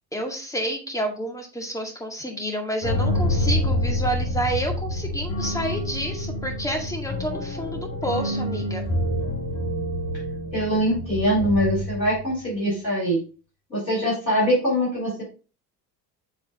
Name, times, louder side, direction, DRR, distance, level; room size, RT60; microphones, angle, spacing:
voice 1, 0.1-8.8, right 1 dB, 5° left, 2 dB, 2.1 m, -29 dB
sound 1, 2.8-12.5, left 1 dB, 55° left, 1.9 m, -27 dB
voice 2, 10.5-13.2 13.7-15.2, equal, 85° left, -7 dB, 4.1 m, -23 dB
7.8 x 3.8 x 3.9 m, 0.34 s
figure-of-eight pair, 60°, 50 cm